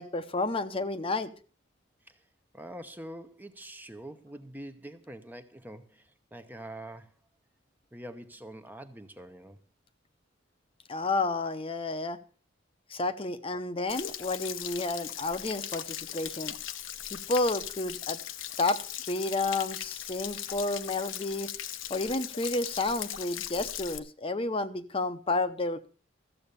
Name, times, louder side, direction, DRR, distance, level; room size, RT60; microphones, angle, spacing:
voice 1, 0.0-1.3 10.9-12.2 12.9-16.6 17.1-18.2 18.6-18.8 19.1-21.5 21.9-25.9, left 2 dB, 30° left, 0.8 m, -31 dB
voice 2, 2.5-7.1 7.9-9.6, right 1 dB, 10° right, 0.8 m, -45 dB
Stream / Splash splatter / Trickle dribble, 13.9-24.0, left 11 dB, 75° left, 0.9 m, -39 dB
14.0 x 7.8 x 6.8 m
head